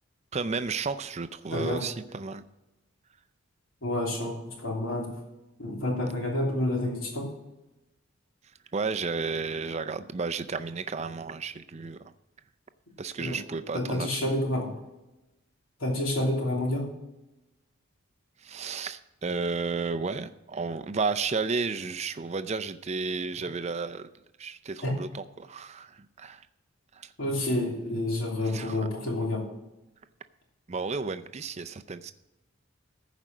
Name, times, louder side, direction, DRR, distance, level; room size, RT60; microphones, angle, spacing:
voice 1, 0.3-2.4 8.7-12.1 13.0-14.2 18.4-24.1 24.4-26.4 27.0-27.1 28.4-28.8 30.7-32.1, right 4 dB, 30° right, 10 dB, 0.5 m, -32 dB
voice 2, 1.5-1.8 3.8-5.1 5.6-7.3 13.2-13.4 13.7-14.7 15.8-16.9 24.8-24.9 27.2-29.4, left 1 dB, 75° left, -1 dB, 3.0 m, -29 dB
15.0 x 5.1 x 6.2 m, 0.97 s
head